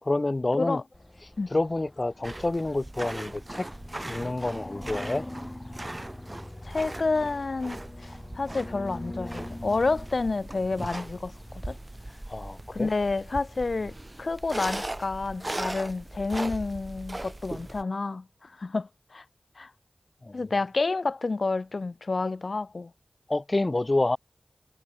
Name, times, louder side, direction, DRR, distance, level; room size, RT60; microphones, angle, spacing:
voice 1, 0.0-0.8 1.5-3.7 4.1-5.2 12.3-12.9 20.2-20.4 23.3-24.2, left 2 dB, 45° left, 1.4 m, -28 dB
sound 1, 0.9-14.7, left 1 dB, 25° left, 7.4 m, -44 dB
sound 2, 2.2-17.8, right 1 dB, 30° right, 0.8 m, -39 dB
voice 2, 6.6-11.8 12.7-19.2 19.6-19.7 20.3-22.9, left 3 dB, 70° left, 1.1 m, -29 dB
wide cardioid pair, 45°, 0 cm